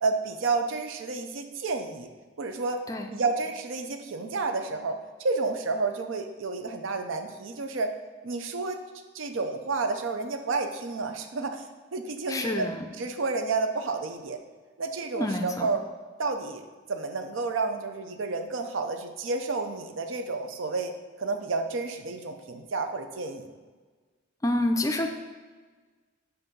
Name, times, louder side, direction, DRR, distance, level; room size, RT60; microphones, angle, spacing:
voice 1, 0.0-2.1 2.4-2.8 3.1-4.9 5.2-7.9 8.2-8.8 9.1-11.6 11.9-12.7 13.0-14.4 14.8-15.8 16.2-16.6 16.9-20.9 21.2-23.5, right 3 dB, 75° right, 7 dB, 0.5 m, -30 dB
voice 2, 12.3-12.9 15.1-15.7 24.4-25.1, left 1 dB, 15° left, 5 dB, 0.4 m, -28 dB
7.8 x 2.7 x 5.3 m, 1.4 s
head